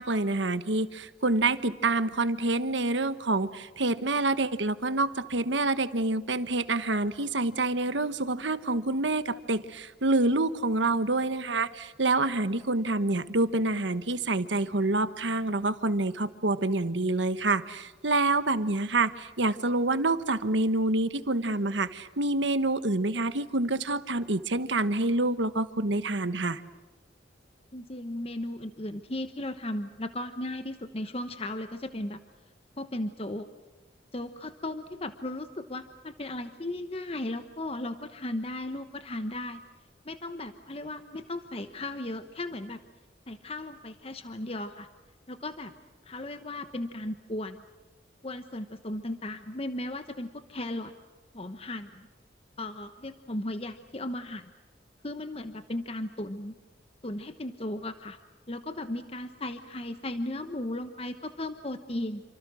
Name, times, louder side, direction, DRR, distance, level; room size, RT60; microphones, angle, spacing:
voice 1, 0.0-26.6, right 2 dB, 90° right, 12 dB, 1.4 m, -27 dB
voice 2, 27.7-32.2 32.8-33.5 34.1-39.6 40.0-42.8 43.3-44.9 45.3-45.7 46.1-47.6 48.2-50.9 51.3-52.1 52.6-54.5 55.0-56.5 57.0-58.2 58.5-62.2, left 1 dB, 35° left, 9 dB, 1.1 m, -36 dB
29.0 x 26.0 x 6.4 m, 1.1 s
head